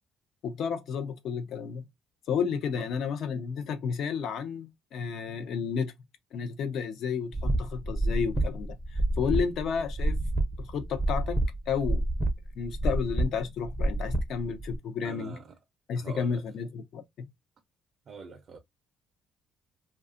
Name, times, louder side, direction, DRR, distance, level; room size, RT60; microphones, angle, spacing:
voice 1, 0.4-1.8 2.3-5.9 6.3-10.2 10.6-11.4 11.7-12.0 12.6-15.4 15.9-17.0, left 6 dB, 65° left, 0.6 m, -32 dB
sound 1, 7.3-14.8, right 1 dB, ahead, 0.5 m, -29 dB
voice 2, 15.0-15.4 16.0-16.3 18.1-18.6, right 5 dB, 50° right, 0.5 m, -43 dB
2.6 x 2.3 x 2.4 m
cardioid pair, 110°, 0 cm